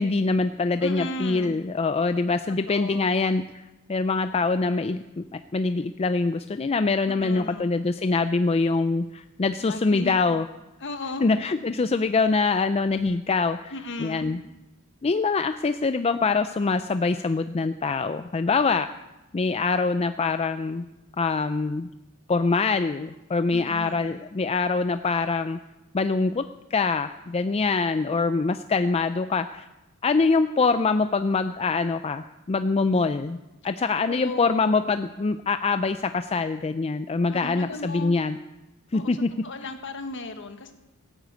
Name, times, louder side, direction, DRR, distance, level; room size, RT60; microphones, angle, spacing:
voice 1, 0.0-3.4 3.9-10.5 11.2-13.7 14.0-14.4 15.0-18.9 19.3-20.8 21.2-21.9 22.3-25.6 25.9-26.4 26.7-29.7 30.0-33.4 33.6-38.4 38.9-39.3, left 4 dB, 30° left, 10 dB, 0.4 m, -24 dB
voice 2, 0.8-1.6 2.6-3.1 7.1-7.7 9.6-10.1 10.8-11.3 13.7-14.4 23.5-24.2 34.1-34.8 37.3-38.2 38.9-40.7, left 2 dB, 60° left, 7 dB, 1.5 m, -36 dB
16.5 x 9.1 x 8.2 m, 1.0 s
head